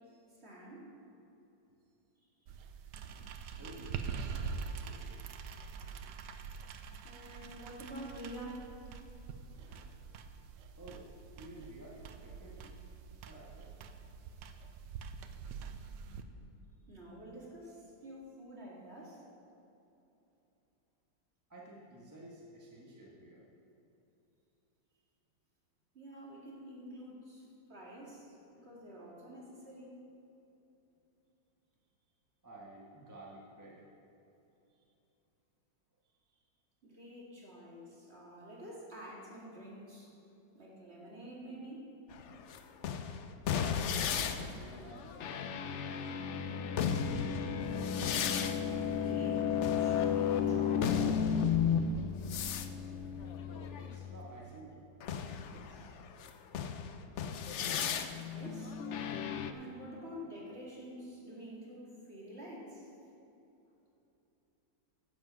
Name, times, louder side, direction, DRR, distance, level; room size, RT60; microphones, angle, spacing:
voice 1, 0.4-0.9 7.0-8.6 9.5-9.9 14.0-14.2 15.6-16.5 16.9-19.2 25.9-30.0 36.8-40.1 40.5-42.0 47.7-48.2 48.7-51.1 58.3-58.8 59.5-62.9, right 1 dB, 35° right, -4 dB, 2.2 m, -48 dB
sound 1, 2.5-16.2, right 6 dB, 75° right, 1.3 m, -45 dB
voice 2, 3.6-5.3 10.8-12.8 13.3-13.7 21.5-23.4 26.1-26.3 32.4-33.8 34.7-34.8 36.3-36.4 44.0-45.5 53.5-54.8 55.4-55.9 56.7-57.3 59.9-60.1, right 1 dB, 10° right, -4 dB, 1.4 m, -53 dB
sound 2, 42.1-54.3 55.0-59.5, left 7 dB, 75° left, 0.6 m, -33 dB
10.5 x 7.7 x 7.5 m, 2.9 s
omnidirectional pair, 2.0 m